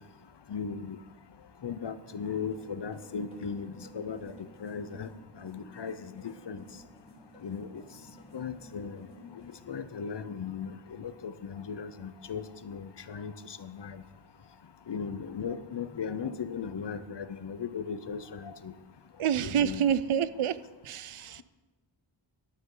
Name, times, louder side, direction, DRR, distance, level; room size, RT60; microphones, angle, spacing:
voice 1, 0.5-1.0 1.6-4.3 4.6-5.1 5.4-6.6 7.4-7.8 8.3-9.0 9.7-14.0 14.9-18.7 19.4-19.8, left 6 dB, 55° left, 12 dB, 0.8 m, -37 dB
sound 1, 2.2-9.6, right 1 dB, 10° left, 3.6 m, -54 dB
voice 2, 19.2-20.6 20.8-21.4, right 9 dB, 80° right, 16 dB, 0.6 m, -28 dB
13.5 x 12.0 x 3.9 m, 1.2 s
wide cardioid pair, 80°, 49 cm